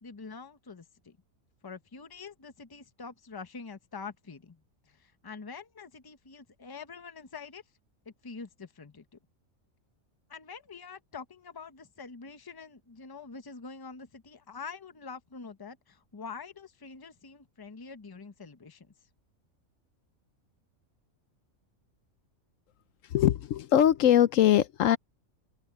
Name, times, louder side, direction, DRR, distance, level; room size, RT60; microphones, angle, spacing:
voice 1, 0.0-1.2 1.6-7.6 8.0-9.2 10.3-18.9, left 5 dB, 20° left, 0.8 m, -45 dB
voice 2, 23.1-25.0, left 11 dB, 70° left, 1.0 m, -22 dB
omnidirectional pair, 1.4 m